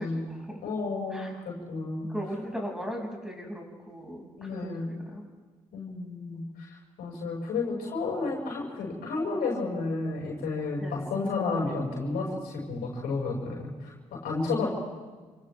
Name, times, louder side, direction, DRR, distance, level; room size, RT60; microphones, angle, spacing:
voice 1, 0.0-0.6 1.1-1.3 2.0-5.3 10.8-11.0, equal, 5° right, -1 dB, 6.7 m, -38 dB
voice 2, 0.6-2.1 4.4-4.9 5.7-14.7, left 3 dB, 75° left, -3 dB, 6.3 m, -32 dB
29.5 x 28.0 x 3.6 m, 1.4 s
hypercardioid pair, 40°, 16 cm